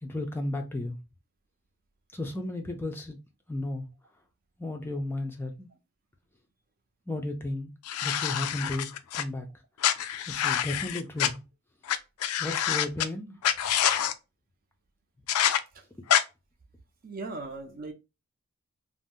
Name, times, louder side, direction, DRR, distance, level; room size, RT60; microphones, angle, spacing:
voice 1, 0.0-1.0 2.1-3.2 3.5-3.9 4.6-5.7 7.1-7.7 8.0-8.9 9.1-9.5 10.3-11.4 12.4-13.4, left 1 dB, 10° left, 0.4 m, -34 dB
sound 1, 7.9-9.2 9.8-11.3 11.9-12.0 12.2-13.1 13.4-14.1 15.3-15.6 16.1-16.2, left 10 dB, 85° left, 0.4 m, -26 dB
voice 2, 17.0-17.9, right 3 dB, 40° right, 0.5 m, -38 dB
2.5 x 2.0 x 3.6 m
head